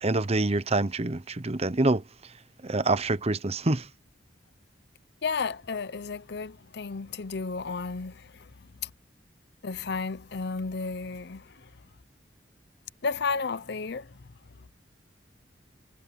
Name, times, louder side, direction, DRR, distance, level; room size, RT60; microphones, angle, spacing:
voice 1, 0.0-2.0 2.6-3.9, right 2 dB, 35° right, 0.9 m, -26 dB
voice 2, 5.2-8.5 8.8-8.9 9.6-11.7 13.0-14.1, left 4 dB, 60° left, 0.7 m, -33 dB
head